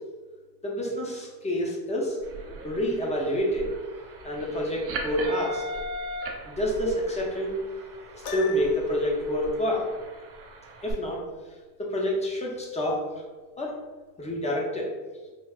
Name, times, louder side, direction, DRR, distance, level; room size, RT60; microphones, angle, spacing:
voice 1, 0.6-2.2 2.6-3.7 4.2-5.6 6.5-7.6 8.1-9.9 10.8-11.2 11.8-13.0 13.6-13.7 14.2-14.9, equal, 15° left, -2 dB, 0.6 m, -28 dB
sound 1, 2.2-10.9, right 1 dB, 30° right, 0.4 m, -39 dB
Piano, 8.2-9.1, left 5 dB, 60° left, 0.7 m, -37 dB
3.4 x 2.5 x 2.4 m, 1.3 s
supercardioid pair, 100°, 47 cm